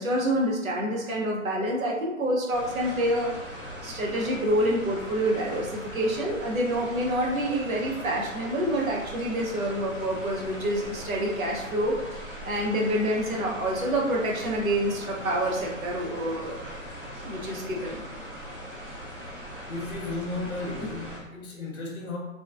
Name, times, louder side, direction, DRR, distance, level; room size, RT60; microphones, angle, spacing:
voice 1, 0.0-3.3 3.8-16.8 17.2-18.0, right 1 dB, 75° right, -2 dB, 0.9 m, -27 dB
sound 1, 2.5-21.2, equal, 25° left, 0.6 m, -40 dB
voice 2, 19.7-22.2, left 2 dB, 60° left, -2 dB, 0.7 m, -34 dB
3.0 x 2.2 x 2.4 m, 0.94 s
hypercardioid pair, 180°, 41 cm